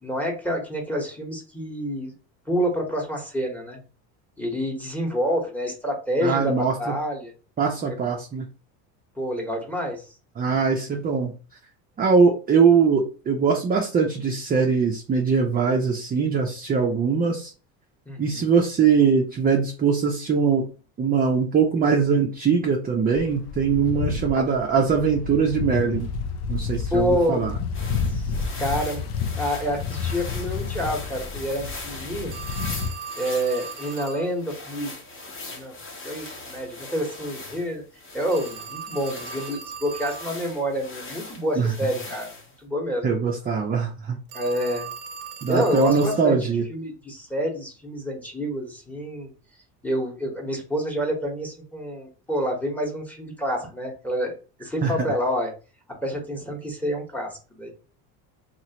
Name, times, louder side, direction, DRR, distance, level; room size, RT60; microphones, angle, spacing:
voice 1, 0.0-2.1 2.5-3.8 4.4-7.3 7.8-8.0 9.2-10.1 18.1-18.5 24.3-24.4 26.9-27.5 28.1-28.3 28.6-29.0 29.4-32.4 33.2-34.9 35.5-35.7 36.0-37.8 38.1-42.3 42.6-43.1 44.3-44.9 45.5-49.3 49.8-54.3 54.6-55.5 56.0-57.7, equal, 5° left, 1 dB, 1.0 m, -28 dB
voice 2, 6.2-6.9 7.6-8.4 10.4-11.3 12.0-17.5 18.2-20.6 21.0-26.1 26.5-27.5 41.6-41.7 43.0-44.2 45.4-46.6 54.8-55.1, right 5 dB, 20° right, 1 dB, 0.5 m, -21 dB
sound 1, 23.2-32.9, left 5 dB, 65° left, 0.6 m, -30 dB
sound 2, 27.7-42.5, left 3 dB, 30° left, 0.9 m, -40 dB
Telephone, 32.3-34.3 38.3-40.3 44.3-46.3, right 6 dB, 75° right, 0.6 m, -38 dB
2.9 x 2.5 x 2.8 m, 0.35 s
supercardioid pair, 105°, 41 cm